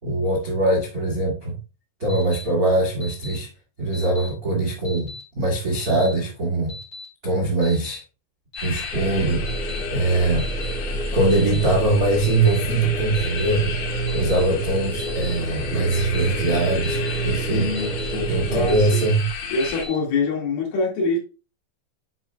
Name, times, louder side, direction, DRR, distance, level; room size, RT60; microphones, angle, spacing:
voice 1, 0.0-1.6 2.0-3.5 3.8-6.7 7.2-8.0 8.6-10.5 11.1-17.7 18.3-19.3, right 2 dB, 75° right, 0.8 m, -22 dB
Alarm, 2.1-2.4 3.0-3.4 3.9-4.3 4.8-5.2 5.8-6.1 6.7-7.0 7.6-8.0 8.5-8.9 9.5-9.8 10.4-10.7 11.3-11.7 12.2-12.6 13.1-13.5 14.1-14.4 15.0-15.3 15.9-16.3 16.8-17.2 17.7-18.1 18.7-19.0 19.6-20.0, left 2 dB, 30° left, 4.2 m, -38 dB
sound 1, 8.6-19.9, left 6 dB, 90° left, 4.2 m, -33 dB
sound 2, 8.9-18.9, right 2 dB, ahead, 3.5 m, -29 dB
voice 2, 17.4-19.0 19.5-21.2, left 3 dB, 60° left, 3.5 m, -25 dB
10.5 x 5.5 x 2.3 m
omnidirectional pair, 5.5 m